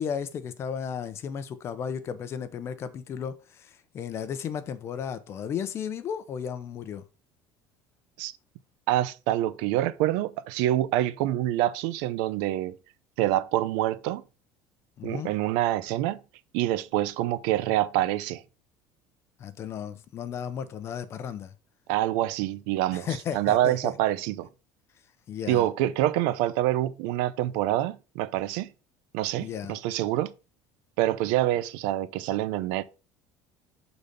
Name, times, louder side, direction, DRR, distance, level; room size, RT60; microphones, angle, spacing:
voice 1, 0.0-7.0 15.0-15.3 19.4-21.5 22.9-23.8 25.3-25.7 29.4-29.8, left 7 dB, 30° left, 0.7 m, -34 dB
voice 2, 8.9-12.8 13.2-14.2 15.0-16.2 16.5-18.4 21.9-24.5 25.5-28.7 29.1-30.3 31.0-32.8, right 14 dB, 75° right, 0.6 m, -26 dB
6.8 x 4.0 x 5.0 m
cardioid pair, 165°, 8 cm